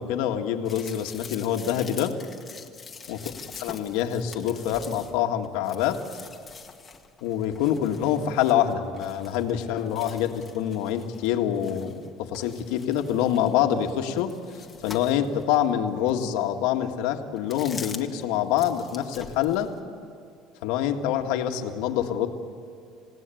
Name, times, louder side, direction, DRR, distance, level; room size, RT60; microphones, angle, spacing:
voice 1, 0.0-2.1 3.1-3.2 3.6-6.0 7.2-14.3 14.8-19.7 20.6-22.3, left 10 dB, 85° left, 5 dB, 1.8 m, -26 dB
sound 1, 0.7-12.1 12.3-15.6 16.1-16.2 17.4-18.2 18.5-19.8, left 5 dB, 20° left, 1.7 m, -45 dB
27.5 x 17.5 x 9.2 m, 2.4 s
cardioid pair, 140°, 0 cm